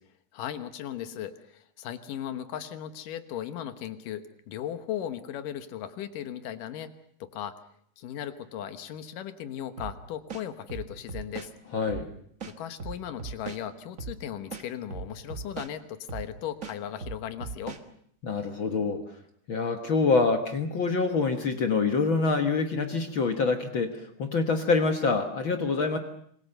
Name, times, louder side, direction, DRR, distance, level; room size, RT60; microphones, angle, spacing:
voice 1, 0.3-6.9 7.2-7.6 8.0-11.5 12.5-17.8, left 10 dB, 85° left, 10 dB, 2.9 m, -37 dB
sound 1, 9.8-9.9 10.3-11.5 11.9-12.0 12.4-13.6 14.0-14.2 14.5-15.7 16.1-16.3 16.6-17.8, right 5 dB, 45° right, 1.0 m, -38 dB
voice 2, 11.7-12.1 18.2-19.0 19.5-26.0, left 4 dB, 50° left, 6 dB, 1.6 m, -26 dB
26.0 x 21.5 x 6.8 m, 0.66 s
omnidirectional pair, 3.7 m